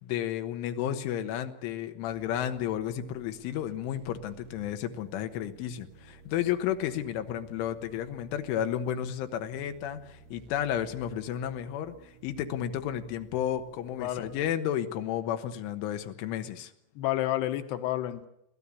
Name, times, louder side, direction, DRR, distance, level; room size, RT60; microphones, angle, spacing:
voice 1, 0.0-16.7, left 10 dB, 90° left, 7 dB, 3.7 m, -32 dB
sound 1, 2.1-14.5, right 6 dB, 85° right, 3.9 m, -55 dB
voice 2, 14.0-14.3 17.0-18.3, left 14 dB, 70° left, 9 dB, 2.9 m, -30 dB
26.0 x 17.0 x 8.4 m, 0.82 s
omnidirectional pair, 5.4 m